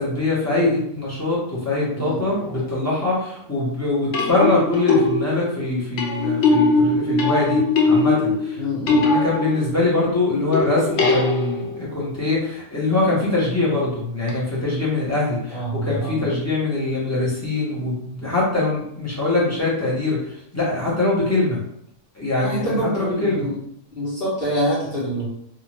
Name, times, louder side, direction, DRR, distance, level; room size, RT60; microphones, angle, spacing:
voice 1, 0.0-21.6 22.1-23.5, left 2 dB, 15° left, -7 dB, 0.8 m, -23 dB
sound 1, 2.4-2.7 4.1-10.0 10.5-11.9 14.3-14.4, left 3 dB, 65° left, 0.8 m, -21 dB
voice 2, 8.6-9.1 15.5-16.2 22.3-23.6 23.9-25.3, right 1 dB, 50° left, -8 dB, 1.1 m, -26 dB
2.5 x 2.4 x 3.1 m, 0.70 s
omnidirectional pair, 1.4 m